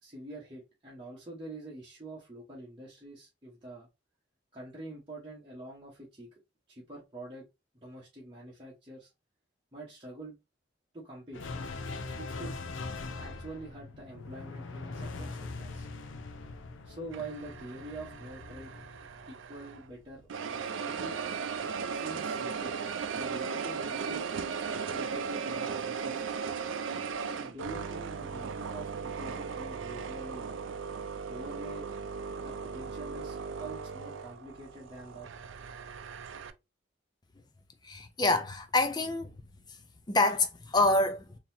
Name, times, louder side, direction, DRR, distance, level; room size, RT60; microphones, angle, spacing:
voice 1, 0.0-3.9 4.5-6.3 6.7-7.5 7.8-9.1 9.7-10.4 10.9-11.4 12.1-12.5 13.2-15.9 16.8-18.7 19.3-21.2 21.9-22.8 23.1-24.3 24.8-26.3 27.1-30.5 31.3-31.9 32.4-35.3, right 2 dB, 25° right, 1.1 m, -45 dB
sound 1, 11.3-19.9, left 3 dB, 80° left, 0.6 m, -42 dB
sound 2, 17.1-19.9 20.3-36.5, right 6 dB, 80° right, 0.4 m, -37 dB
voice 2, 37.8-39.3 39.7-39.8 40.1-41.4, left 2 dB, 20° left, 0.4 m, -27 dB
3.9 x 2.9 x 2.7 m
head